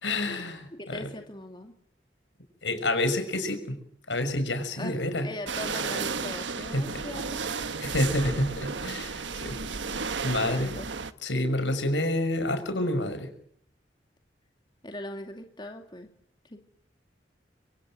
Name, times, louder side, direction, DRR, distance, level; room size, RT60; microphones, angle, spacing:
voice 1, 0.0-1.1 2.6-3.8 4.1-5.3 6.7-6.9 7.8-9.5 10.0-10.7 11.2-13.3, left 1 dB, 90° left, 8 dB, 6.1 m, -28 dB
voice 2, 0.8-1.7 4.8-7.4 10.4-10.9 14.8-16.1 16.5-16.6, left 1 dB, 25° left, 4 dB, 2.4 m, -40 dB
sound 1, 5.5-11.1, right 5 dB, 90° right, 1.4 m, -33 dB
26.5 x 26.5 x 7.7 m, 0.66 s
head